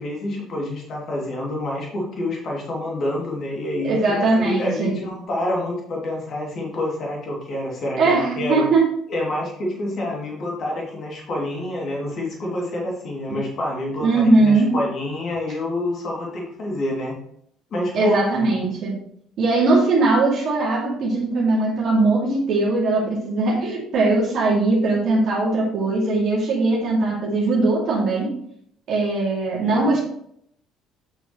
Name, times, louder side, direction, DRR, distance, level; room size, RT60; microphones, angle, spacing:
voice 1, 0.0-8.7 9.1-17.1 17.7-18.2 29.7-30.0, left 1 dB, 50° left, -2 dB, 2.8 m, -27 dB
voice 2, 3.8-4.9 8.0-8.9 14.0-14.7 17.9-18.9 19.4-28.3 28.9-30.0, right 3 dB, 55° right, -4 dB, 2.8 m, -20 dB
8.6 x 6.2 x 3.2 m, 0.69 s
hypercardioid pair, 55°, 0 cm